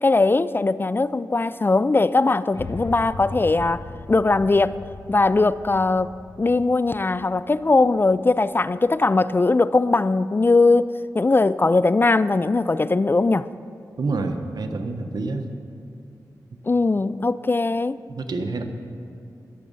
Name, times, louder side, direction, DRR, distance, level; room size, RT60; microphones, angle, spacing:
voice 1, 0.0-3.8 4.1-4.8 5.1-6.1 6.4-13.5 16.6-18.0, left 3 dB, 30° left, 16 dB, 0.3 m, -20 dB
sound 1, 2.5-8.7, left 2 dB, 55° left, 1.3 m, -39 dB
voice 2, 14.0-15.5 18.1-18.6, right 3 dB, 70° right, 5 dB, 1.1 m, -27 dB
21.0 x 7.4 x 5.4 m, 2.6 s
cardioid pair, 55°, 7 cm